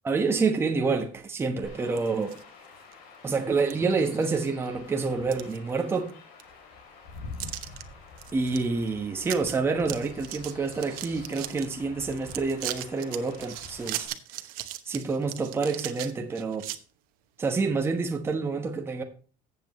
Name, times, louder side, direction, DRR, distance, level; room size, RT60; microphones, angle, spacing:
voice 1, 0.0-2.4 3.2-6.1 8.3-14.1 14.9-16.7 17.4-19.0, right 4 dB, 15° right, 1.2 m, -28 dB
Chirp tweet / Wind / Stream, 1.6-14.1, left 4 dB, 90° left, 3.7 m, -47 dB
sound 1, 1.8-2.4 2.9-3.0 3.7-3.8 4.2-4.7 5.1-6.1 6.4-6.5 7.4-7.8 8.2-8.6 8.9-9.0 9.2-9.5 9.8-11.7 12.1-16.8, right 15 dB, 80° right, 1.0 m, -38 dB
14.5 x 7.9 x 3.1 m
cardioid pair, 165°, 15 cm